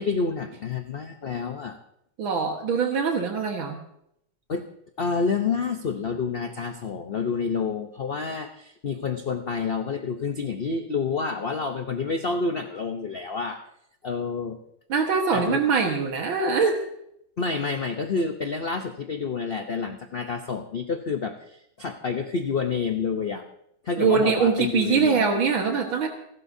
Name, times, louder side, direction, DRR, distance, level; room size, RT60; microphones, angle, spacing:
voice 1, 0.0-1.8 4.5-4.6 5.0-13.6 14.0-14.6 15.3-15.6 17.4-23.4 23.8-25.2, left 5 dB, 60° left, 6 dB, 0.6 m, -28 dB
voice 2, 2.2-3.8 14.9-16.9 24.0-26.1, right 5 dB, 80° right, 3 dB, 2.3 m, -23 dB
29.0 x 12.5 x 2.7 m, 0.76 s
omnidirectional pair, 2.2 m